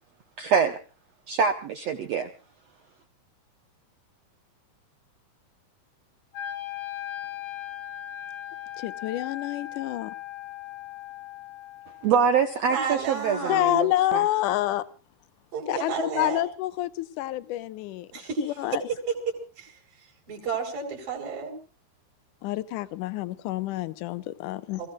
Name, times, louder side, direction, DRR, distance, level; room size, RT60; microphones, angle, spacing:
voice 1, 0.4-0.7 1.3-2.3 12.0-13.9 14.1-14.2, right 6 dB, 85° right, 7 dB, 1.4 m, -24 dB
Wind instrument woodwind instrument, 6.3-12.4, left 12 dB, 90° left, 5.8 m, -38 dB
voice 2, 8.8-10.1 13.5-14.8 15.7-18.1 18.4-18.8 22.4-24.8, left 15 dB, 70° left, 13 dB, 2.1 m, -28 dB
voice 3, 12.7-13.6 15.5-16.4 18.1-18.8 19.6-19.7 20.3-21.5, right 5 dB, 60° right, 0 dB, 5.7 m, -31 dB
29.0 x 16.5 x 2.4 m, 0.34 s
omnidirectional pair, 4.5 m